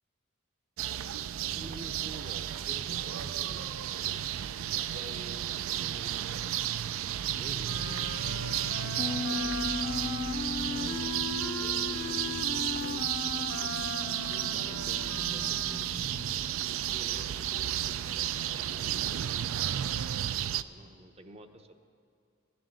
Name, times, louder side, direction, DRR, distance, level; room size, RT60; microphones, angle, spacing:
sound 1, 0.8-20.6, right 11 dB, 75° right, 0.4 m, -33 dB
voice 1, 1.5-6.6 7.4-9.7 10.7-11.4 11.8-13.7 14.3-16.1 16.7-19.7 20.7-21.8, right 1 dB, 30° right, 7 dB, 0.7 m, -50 dB
Wind instrument woodwind instrument, 7.6-16.1, left 4 dB, 80° left, 0.6 m, -39 dB
Bass guitar, 9.0-18.3, left 3 dB, 25° left, 0.4 m, -40 dB
14.5 x 7.8 x 8.0 m, 2.4 s
head